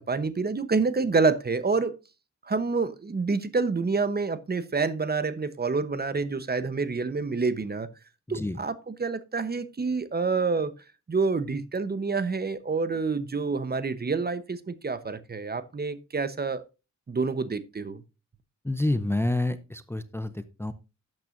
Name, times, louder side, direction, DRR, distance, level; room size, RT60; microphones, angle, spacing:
voice 1, 0.1-2.0 2.4-7.9 8.3-10.7 11.1-16.6 17.1-18.0, right 4 dB, 30° right, 0.9 m, -27 dB
voice 2, 8.3-8.6 18.6-20.7, left 2 dB, 10° left, 0.6 m, -28 dB
12.0 x 8.9 x 2.6 m
wide cardioid pair, 100°, 31 cm